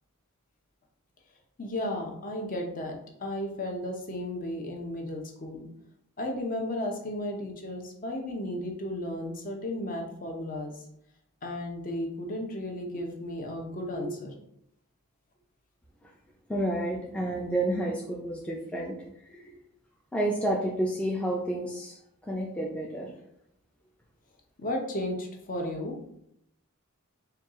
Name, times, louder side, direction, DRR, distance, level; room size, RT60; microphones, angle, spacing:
voice 1, 1.6-5.7 6.2-10.7 11.4-14.3 19.3-19.6 24.6-26.0, left 1 dB, 40° left, 2 dB, 0.7 m, -34 dB
voice 2, 16.5-18.9 20.1-22.0 22.3-23.1, right 1 dB, 5° left, -2 dB, 0.4 m, -30 dB
4.5 x 2.3 x 3.6 m, 0.75 s
head